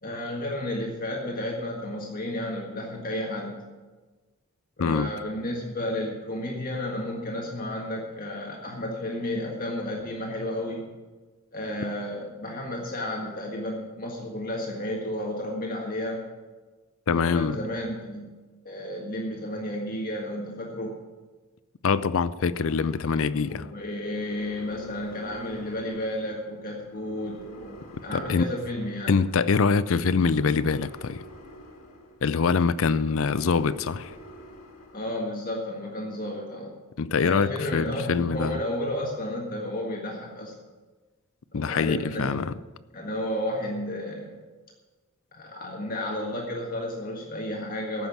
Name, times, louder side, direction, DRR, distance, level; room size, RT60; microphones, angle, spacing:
voice 1, 0.0-3.6 4.8-10.9 11.5-16.2 17.1-18.3 18.7-21.0 23.5-27.8 28.0-29.1 34.9-36.8 37.2-40.6 41.5-42.3 42.9-44.4 45.3-48.1, left 1 dB, 40° left, 1.8 m, -32 dB
voice 2, 17.1-17.6 21.8-23.7 28.1-28.5 29.1-31.2 32.2-34.1 37.0-38.6 41.5-42.5, left 5 dB, 65° left, 0.5 m, -24 dB
sound 1, 22.5-35.1, equal, 85° left, 2.1 m, -48 dB
14.5 x 6.0 x 9.3 m
head